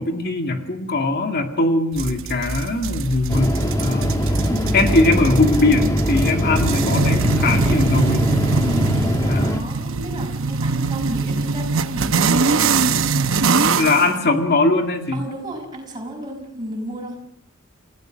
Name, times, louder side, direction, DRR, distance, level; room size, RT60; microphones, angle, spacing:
voice 1, 0.0-4.1 4.7-8.5 9.2-9.6 13.8-15.2, left 2 dB, 45° left, 4 dB, 2.1 m, -20 dB
sound 1, 2.0-14.1, right 4 dB, 60° right, 0.9 m, -22 dB
sound 2, 3.3-9.6, equal, 15° left, 1.3 m, -22 dB
voice 2, 4.5-5.0 8.6-12.6 13.6-14.2 15.1-17.2, equal, 20° right, -1 dB, 5.8 m, -32 dB
29.5 x 16.0 x 6.3 m, 0.75 s
head